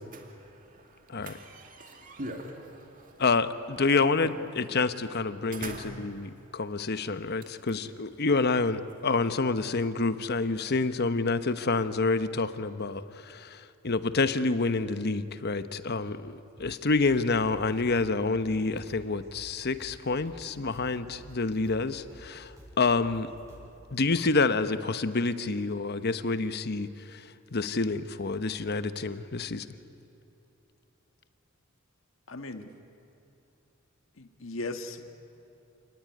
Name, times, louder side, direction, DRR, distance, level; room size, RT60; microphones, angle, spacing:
voice 1, 0.0-3.1 4.2-4.3 5.5-5.9, right 2 dB, 40° right, 2 dB, 2.4 m, -42 dB
voice 2, 3.2-23.3 23.9-27.2 27.5-29.7, left 3 dB, 55° left, 11 dB, 1.0 m, -28 dB
sound 1, 16.6-23.8, equal, 15° right, 7.1 m, -52 dB
voice 3, 32.3-32.7 34.2-35.0, left 2 dB, 70° left, 7 dB, 1.8 m, -37 dB
28.5 x 19.0 x 10.0 m, 2.9 s
head